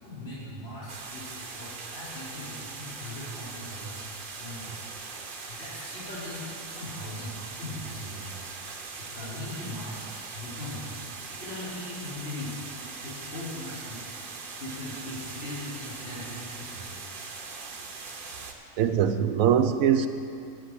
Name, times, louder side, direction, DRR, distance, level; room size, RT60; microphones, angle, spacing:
voice 1, 0.0-4.0 4.4-4.9 5.2-10.1 10.3-10.9 11.3-12.6 13.0-17.0, left 1 dB, 50° left, -10 dB, 3.5 m, -40 dB
sound 1, 0.9-18.5, right 4 dB, 45° right, 0.9 m, -41 dB
voice 2, 18.8-20.1, right 8 dB, 85° right, 10 dB, 1.0 m, -22 dB
11.5 x 6.0 x 8.3 m, 2.4 s
omnidirectional pair, 1.4 m